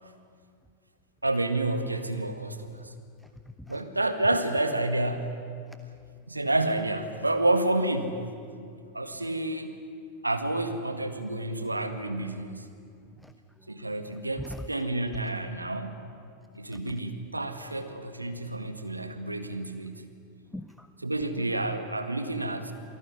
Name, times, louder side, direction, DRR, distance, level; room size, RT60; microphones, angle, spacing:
voice 1, 1.2-2.9 3.7-5.4 6.3-8.3 8.9-9.7 10.2-12.7 13.7-16.1 16.6-20.1 21.0-22.7, right 2 dB, 85° right, 8 dB, 1.8 m, -29 dB
voice 2, 3.2-3.8 5.7-5.8 13.2-13.7 14.4-14.7 16.7-16.9 20.5-20.9, equal, ahead, 10 dB, 0.9 m, -43 dB
28.0 x 19.0 x 9.6 m, 2.4 s
figure-of-eight pair, 90°, 0 cm